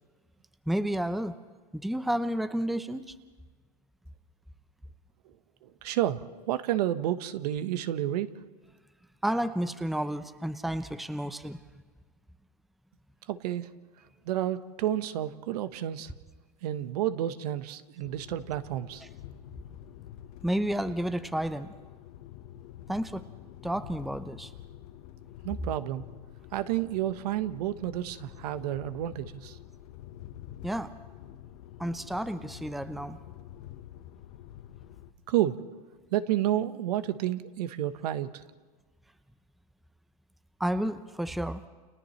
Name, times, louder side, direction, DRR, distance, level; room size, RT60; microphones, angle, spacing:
voice 1, 0.7-1.4 1.7-3.1 9.2-11.6 20.4-21.7 22.9-23.2 23.6-24.5 30.6-30.9 31.8-33.2 40.6-41.6, right 1 dB, ahead, 12 dB, 0.8 m, -31 dB
voice 2, 5.6-8.3 13.3-13.7 14.2-16.1 16.6-19.0 25.4-26.1 26.5-29.6 35.3-35.6 36.1-38.4, right 12 dB, 70° right, 11 dB, 1.2 m, -30 dB
sound 1, 18.0-35.1, left 12 dB, 60° left, 1.2 m, -48 dB
30.0 x 28.0 x 3.2 m, 1.4 s
hypercardioid pair, 110°, 21 cm